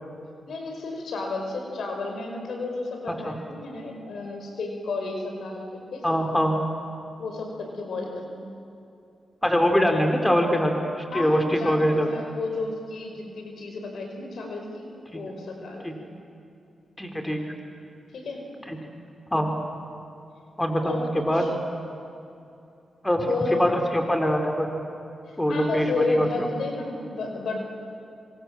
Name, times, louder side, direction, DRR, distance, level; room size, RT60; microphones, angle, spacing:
voice 1, 0.5-6.0 7.2-8.5 11.1-14.8 15.1-15.8 18.1-18.4 20.8-21.5 23.3-23.7 25.5-27.6, left 3 dB, 75° left, 3 dB, 5.2 m, -31 dB
voice 2, 6.0-6.6 9.4-10.7 11.0-12.1 15.1-15.2 15.8-15.9 17.0-17.4 18.7-18.8 19.3-19.5 20.6-21.5 23.0-24.7 25.4-26.3, equal, 10° left, 3 dB, 4.2 m, -23 dB
26.0 x 25.5 x 7.7 m, 2.7 s
cardioid pair, 55°, 0 cm